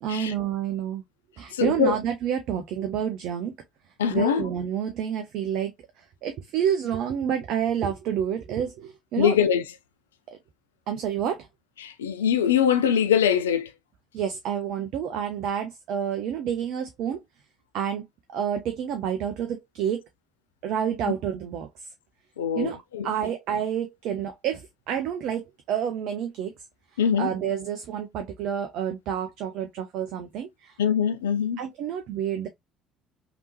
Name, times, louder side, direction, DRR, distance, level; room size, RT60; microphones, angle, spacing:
voice 1, 0.0-1.0 1.4-3.5 4.1-9.4 10.3-10.4 10.9-11.5 14.1-17.2 17.7-20.0 20.6-21.9 22.6-22.8 23.0-26.5 26.9-30.8 31.6-32.5, right 9 dB, 55° right, 0.5 m, -29 dB
voice 2, 1.5-1.9 4.0-4.5 9.2-9.6 11.8-13.7 22.4-23.1 27.0-27.3 30.8-31.6, left 8 dB, 75° left, 0.3 m, -23 dB
3.4 x 2.8 x 2.8 m
figure-of-eight pair, 55°, 0 cm